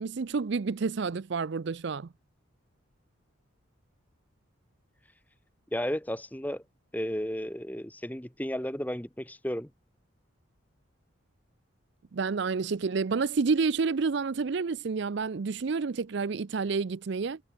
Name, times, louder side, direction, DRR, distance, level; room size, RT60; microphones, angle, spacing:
voice 1, 0.0-2.1 12.1-17.4, right 4 dB, 55° right, 0.5 m, -29 dB
voice 2, 5.7-6.6 6.9-9.7, equal, 10° left, 1.4 m, -33 dB
head